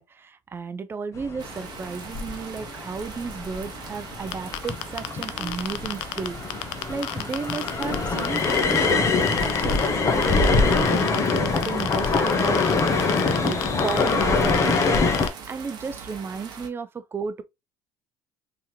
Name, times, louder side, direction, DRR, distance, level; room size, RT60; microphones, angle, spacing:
voice 1, 0.0-6.6 6.9-9.8 10.1-13.0 13.4-15.1 15.5-17.4, right 5 dB, 25° right, 0.5 m, -33 dB
sound 1, 1.2-15.3, left 4 dB, 35° left, 1.0 m, -24 dB
sound 2, 1.4-16.7, right 6 dB, 55° right, 1.1 m, -42 dB
sound 3, 4.3-8.9 9.3-9.9 10.2-15.3, left 16 dB, 80° left, 0.4 m, -30 dB
3.6 x 3.0 x 2.8 m
supercardioid pair, 95°, 9 cm